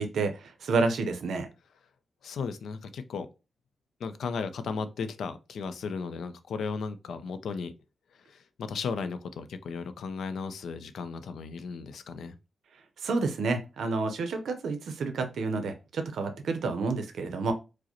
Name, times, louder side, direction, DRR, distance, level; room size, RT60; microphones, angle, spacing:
voice 1, 0.0-1.5 13.0-17.5, right 3 dB, 85° right, 0.6 m, -29 dB
voice 2, 2.2-3.3 4.0-7.7 8.2-12.4, left 5 dB, 85° left, 0.4 m, -35 dB
4.7 x 2.0 x 2.9 m
wide cardioid pair, 160°, 0 cm